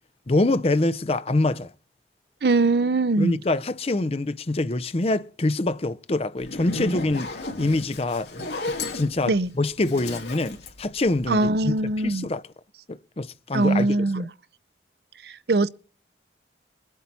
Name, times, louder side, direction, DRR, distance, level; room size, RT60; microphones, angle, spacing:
voice 1, 0.3-1.7 3.2-8.3 8.6-11.8 12.0-12.4 12.9-14.2, left 2 dB, 35° left, 0.6 m, -25 dB
voice 2, 2.4-3.4 9.3-9.5 11.3-12.2 13.5-14.3 15.2-15.7, right 2 dB, 65° right, 0.6 m, -22 dB
Zipper (clothing), 6.4-11.6, left 2 dB, 75° left, 2.8 m, -33 dB
22.0 x 8.3 x 4.2 m
head